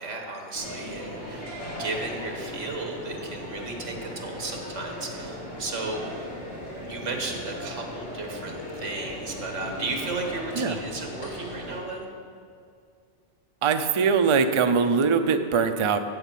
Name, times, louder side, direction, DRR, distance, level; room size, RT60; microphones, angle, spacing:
voice 1, 0.0-6.3 6.8-12.1, right 3 dB, 90° right, 2 dB, 1.7 m, -34 dB
sound 1, 0.5-11.8, equal, 85° left, 3.2 m, -37 dB
voice 2, 13.6-16.0, right 5 dB, 50° right, 8 dB, 0.3 m, -22 dB
8.1 x 7.9 x 7.4 m, 2.3 s
omnidirectional pair, 1.2 m